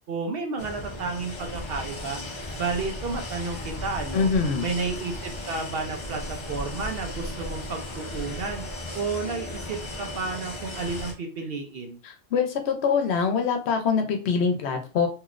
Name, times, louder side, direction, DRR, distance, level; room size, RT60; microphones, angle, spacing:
voice 1, 0.1-2.2 2.6-4.3 4.6-8.6 8.9-12.0, right 4 dB, 65° right, 3 dB, 0.8 m, -32 dB
sound 1, 0.6-11.1, left 1 dB, 35° left, 0.6 m, -36 dB
voice 2, 4.1-4.7 12.0-15.1, left 5 dB, 75° left, 4 dB, 0.9 m, -24 dB
3.0 x 2.8 x 2.4 m, 0.35 s
omnidirectional pair, 1.1 m